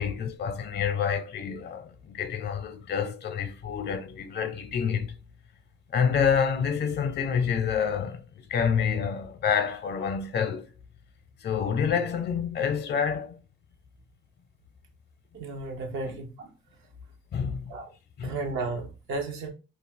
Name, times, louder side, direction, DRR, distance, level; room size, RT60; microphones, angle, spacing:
voice 1, 0.0-5.2 5.9-10.7 11.4-13.4 16.1-16.2 17.3-17.7 18.2-18.4, left 7 dB, 55° left, 0.6 m, -28 dB
voice 2, 15.3-16.5 17.7-17.9 18.2-19.5, right 3 dB, 80° right, 0.7 m, -33 dB
2.4 x 2.3 x 3.4 m
cardioid pair, 90°, 20 cm